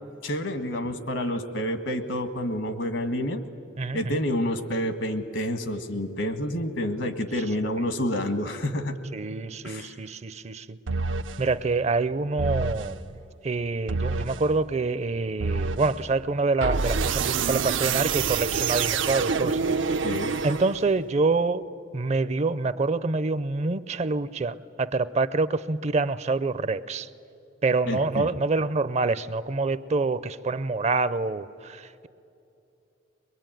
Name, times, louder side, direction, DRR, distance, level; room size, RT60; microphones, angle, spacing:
voice 1, 0.2-3.4 3.9-9.0 9.6-10.0 20.0-20.4 27.9-28.3, left 1 dB, 75° left, 9 dB, 1.6 m, -29 dB
voice 2, 9.1-10.8 11.4-13.0 13.4-19.6 20.4-21.6 21.9-27.1 27.6-32.1, right 3 dB, 35° right, 16 dB, 0.5 m, -26 dB
sound 1, 10.9-11.4 12.4-12.9 13.9-14.4 15.4-16.0 16.6-21.0, right 5 dB, 85° right, 0.7 m, -27 dB
22.5 x 22.0 x 9.1 m, 2.8 s
head